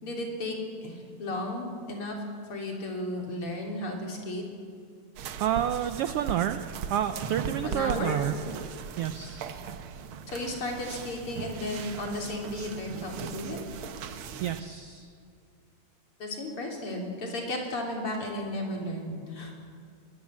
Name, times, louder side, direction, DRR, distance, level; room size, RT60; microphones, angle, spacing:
voice 1, 0.0-2.2 2.5-4.4 7.6-8.3 10.3-13.6 16.2-19.5, left 1 dB, 45° left, 1 dB, 4.0 m, -34 dB
sound 1, 5.2-14.6, right 7 dB, 65° right, 1.4 m, -38 dB
voice 2, 5.4-6.6 6.9-8.4 9.0-9.5 14.4-15.1, right 10 dB, 80° right, 9 dB, 1.3 m, -29 dB
21.5 x 20.5 x 7.5 m, 2.2 s
omnidirectional pair, 3.5 m